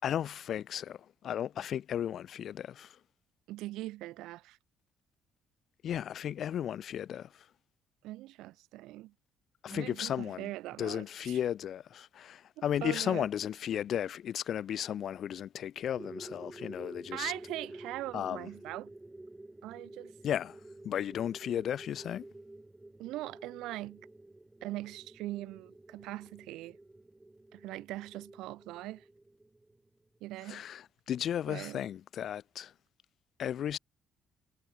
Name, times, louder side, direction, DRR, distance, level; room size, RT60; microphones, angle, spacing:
voice 1, 0.0-3.0 5.8-7.4 9.6-10.5 10.8-17.3 18.1-18.5 20.2-20.6 20.8-22.3 30.5-32.7 33.4-33.8, left 10 dB, 60° left, 0.7 m, -35 dB
voice 2, 3.5-4.6 8.0-9.1 9.7-11.4 12.6-13.3 17.1-18.9 19.6-20.1 23.0-24.1 24.6-26.8 27.5-29.0 30.2-30.6 31.5-31.8, right 17 dB, 85° right, 1.0 m, -41 dB
sound 1, 15.9-30.2, right 2 dB, 15° right, 7.1 m, -50 dB
supercardioid pair, 80°, 0 cm